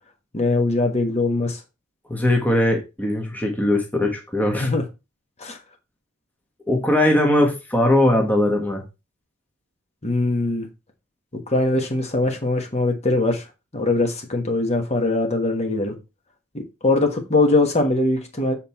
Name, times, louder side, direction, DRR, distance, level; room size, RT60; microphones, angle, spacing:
voice 1, 0.3-1.6 4.6-4.8 5.4-5.6 10.0-10.7 11.5-13.4 13.7-15.9 16.8-18.5, left 2 dB, 30° left, 1.4 m, -21 dB
voice 2, 2.1-4.7 6.7-8.8, left 1 dB, 10° left, 1.4 m, -20 dB
7.8 x 4.5 x 4.4 m
head